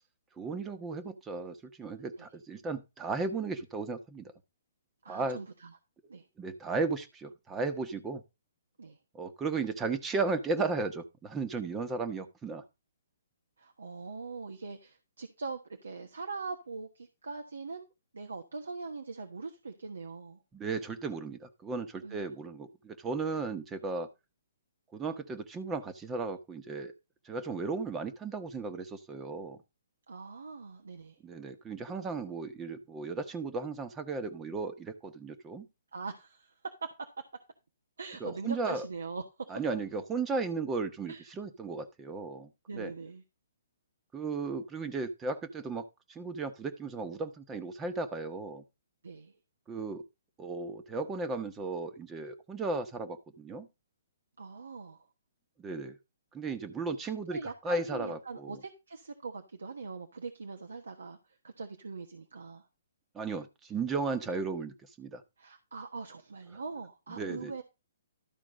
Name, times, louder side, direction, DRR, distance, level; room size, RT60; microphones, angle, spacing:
voice 1, 0.4-4.3 5.1-5.4 6.4-8.2 9.1-12.6 20.5-24.1 24.9-26.9 27.2-29.6 31.2-35.7 38.2-38.8 39.5-42.9 44.1-48.6 49.7-50.0 50.4-53.7 55.6-56.0 56.3-58.6 63.1-65.2 67.2-67.6, right 4 dB, 15° right, 1.2 m, -35 dB
voice 2, 5.0-5.8 6.1-6.2 8.8-9.0 13.6-17.8 18.1-20.4 22.0-22.2 30.1-31.2 35.9-36.5 38.0-39.2 41.1-41.3 42.7-43.2 49.0-49.3 54.4-55.1 57.3-62.7 65.4-67.6, right 4 dB, 80° right, 1.2 m, -42 dB
12.5 x 4.2 x 5.1 m
hypercardioid pair, 135°, 0 cm